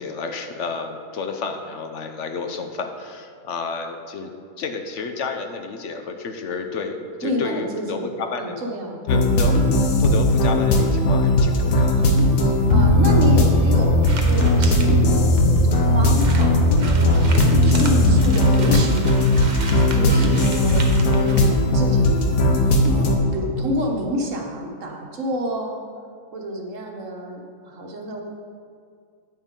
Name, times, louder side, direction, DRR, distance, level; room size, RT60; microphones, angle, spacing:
voice 1, 0.0-4.3 4.6-8.5 9.1-9.6 10.0-12.1, left 4 dB, 65° left, 5 dB, 1.0 m, -30 dB
voice 2, 7.2-8.1 8.4-9.0 12.4-19.3 19.9-22.7 22.9-25.8 26.3-28.2, equal, 65° right, 1 dB, 1.5 m, -29 dB
sound 1, 9.1-23.2, left 1 dB, 90° left, 1.4 m, -17 dB
sound 2, 14.0-14.9 15.6-15.7 15.8-15.9 16.1-21.4, right 3 dB, 35° right, 0.9 m, -35 dB
9.0 x 8.9 x 3.7 m, 2.2 s
omnidirectional pair, 1.4 m